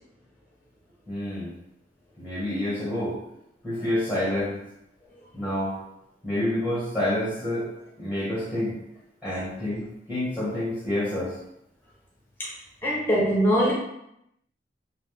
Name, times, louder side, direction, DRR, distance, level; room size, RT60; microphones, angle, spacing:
voice 1, 1.1-1.5 2.2-3.2 3.6-4.6 5.3-5.7 6.2-7.7 8.0-8.7 9.2-11.3, left 1 dB, 10° right, -9 dB, 1.4 m, -28 dB
voice 2, 12.8-13.7, equal, 10° left, -6 dB, 0.7 m, -22 dB
3.2 x 2.7 x 3.3 m, 0.82 s
head